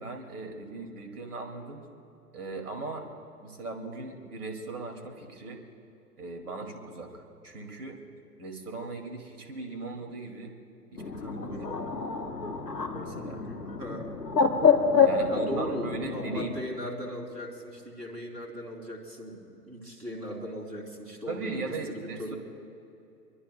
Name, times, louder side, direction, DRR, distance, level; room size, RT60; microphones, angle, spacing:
voice 1, 0.0-1.8 2.3-5.6 6.2-8.0 8.4-10.5 10.9-11.7 13.0-13.4 15.0-16.5 21.3-22.3, right 3 dB, 65° right, 4 dB, 2.6 m, -38 dB
Bird, 11.0-16.5, left 5 dB, 80° left, 1.3 m, -27 dB
voice 2, 11.5-11.8 13.8-14.1 15.3-22.4, equal, 85° right, 0 dB, 3.7 m, -38 dB
24.0 x 24.0 x 2.3 m, 2.7 s
figure-of-eight pair, 110°, 48 cm